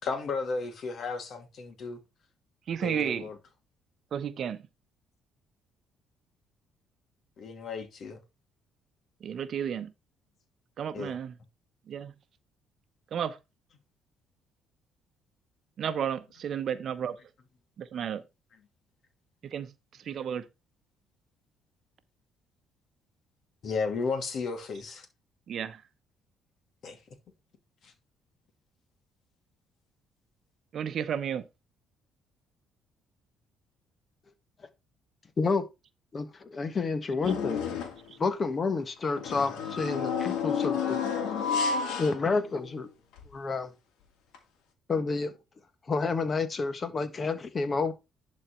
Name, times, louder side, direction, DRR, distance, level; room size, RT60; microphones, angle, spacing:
voice 1, 0.0-2.0 2.8-3.3 7.4-8.2 10.9-11.2 23.6-25.1 26.8-27.0 27.8-27.9, left 4 dB, 60° left, 2.4 m, -34 dB
voice 2, 2.7-3.3 4.1-4.6 9.2-9.9 10.8-11.3 11.9-12.1 13.1-13.4 15.8-17.2 17.8-18.2 19.4-19.7 20.0-20.4 25.5-25.8 30.7-31.4, right 8 dB, 55° right, 0.9 m, -32 dB
voice 3, 36.1-37.7 38.2-41.0 41.7-42.9 43.3-43.7 44.9-45.3 45.9-47.9, left 4 dB, 35° left, 1.5 m, -29 dB
sound 1, 37.2-38.1 39.2-42.8 43.2-43.3 44.3-44.4, left 6 dB, 80° left, 2.3 m, -31 dB
11.0 x 4.3 x 4.5 m
cardioid pair, 85°, 0 cm